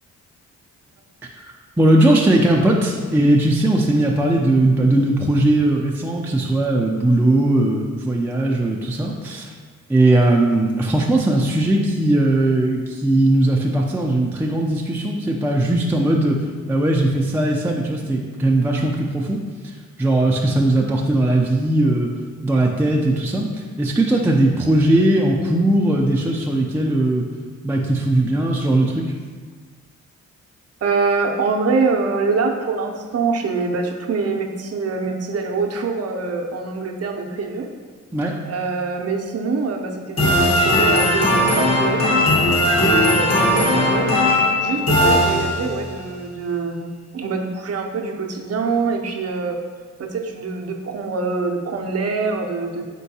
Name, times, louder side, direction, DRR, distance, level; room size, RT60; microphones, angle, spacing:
voice 1, 1.8-9.5 9.9-16.4 16.7-19.7 20.0-22.1 22.4-27.2 27.6-29.1 38.1-38.3, right 1 dB, 5° right, -1 dB, 0.4 m, -18 dB
voice 2, 30.8-37.7 38.4-42.4 42.7-44.2 44.6-49.6 50.0-52.9, right 4 dB, 50° right, 3 dB, 0.6 m, -24 dB
sound 1, 40.2-45.9, left 1 dB, 55° left, 1.2 m, -18 dB
4.4 x 3.8 x 2.7 m, 1.5 s
cardioid pair, 60°, 31 cm